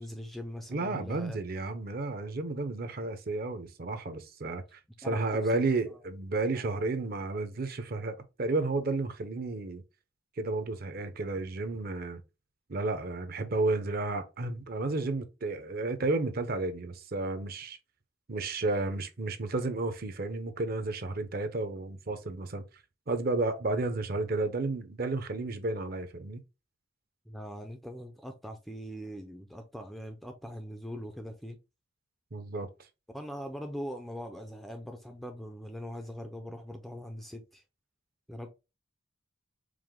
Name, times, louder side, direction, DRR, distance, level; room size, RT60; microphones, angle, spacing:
voice 1, 0.0-1.4 5.0-5.2 5.5-6.0 6.5-6.6 27.3-31.6 33.1-37.6 38.3-38.5, equal, ahead, 0.4 m, -41 dB
voice 2, 0.7-9.8 10.4-12.2 12.7-17.8 18.3-22.6 23.1-26.4 32.3-32.7, right 2 dB, 50° right, 0.6 m, -32 dB
4.8 x 2.1 x 3.6 m
head